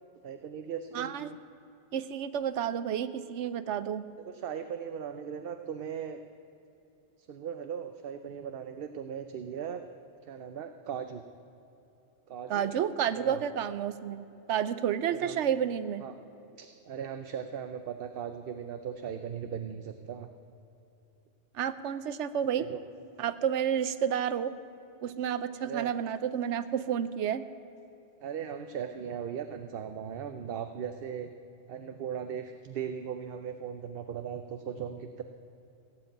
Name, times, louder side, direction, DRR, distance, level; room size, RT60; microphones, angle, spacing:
voice 1, 0.2-1.4 4.2-6.2 7.2-9.9 10.3-11.2 12.3-12.7 13.2-13.4 15.1-15.4 16.0-16.1 16.6-20.3 22.5-22.8 25.6-25.9 28.2-31.3 31.7-35.2, right 8 dB, 60° right, 8 dB, 0.8 m, -38 dB
voice 2, 0.9-1.3 1.9-4.0 12.5-16.0 21.5-22.7 23.2-24.5 25.0-27.5, right 9 dB, 90° right, 14 dB, 1.0 m, -30 dB
16.5 x 7.9 x 9.0 m, 2.9 s
omnidirectional pair, 1.2 m